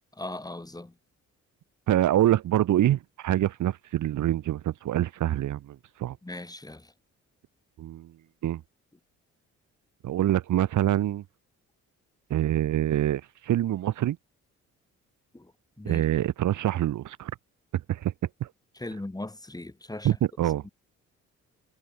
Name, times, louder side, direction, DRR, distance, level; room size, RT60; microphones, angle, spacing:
voice 1, 0.2-1.0 6.2-6.9 15.3-15.5 15.8-16.0 18.8-20.2 20.6-20.7, left 2 dB, 10° left, 7.0 m, -38 dB
voice 2, 1.9-6.2 7.8-8.1 8.4-8.6 10.0-11.2 12.3-14.2 15.8-17.3 17.7-18.1 18.4-18.5 20.0-20.6, right 13 dB, 75° right, 4.0 m, -25 dB
cardioid pair, 90°, 30 cm